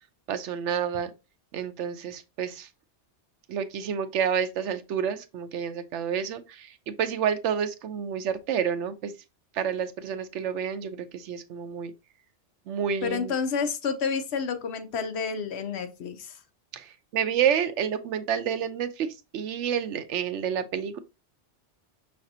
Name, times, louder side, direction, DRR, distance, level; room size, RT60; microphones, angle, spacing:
voice 1, 0.3-1.1 1.5-2.7 3.5-9.1 9.5-11.9 12.7-13.3 16.7-21.0, right 8 dB, 80° right, 0.9 m, -29 dB
voice 2, 13.0-16.3, left 6 dB, 70° left, 0.9 m, -29 dB
5.7 x 3.3 x 2.7 m
omnidirectional pair, 1.2 m